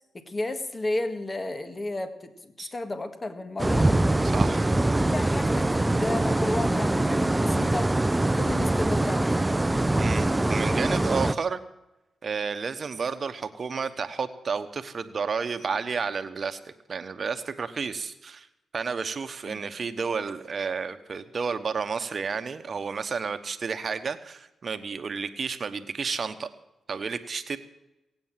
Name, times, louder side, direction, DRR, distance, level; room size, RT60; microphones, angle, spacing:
voice 1, 0.1-3.9 4.7-5.7 5.9-7.9 8.3-9.4 19.5-19.6, left 2 dB, 30° left, 8 dB, 1.8 m, -33 dB
sound 1, 3.6-11.3, right 1 dB, 15° right, 0.6 m, -23 dB
voice 2, 4.2-4.7 10.0-11.6 12.2-18.5 18.7-26.5 26.9-27.6, right 5 dB, 55° right, 9 dB, 1.1 m, -31 dB
17.5 x 9.1 x 7.5 m, 0.92 s
cardioid pair, 60°, 0 cm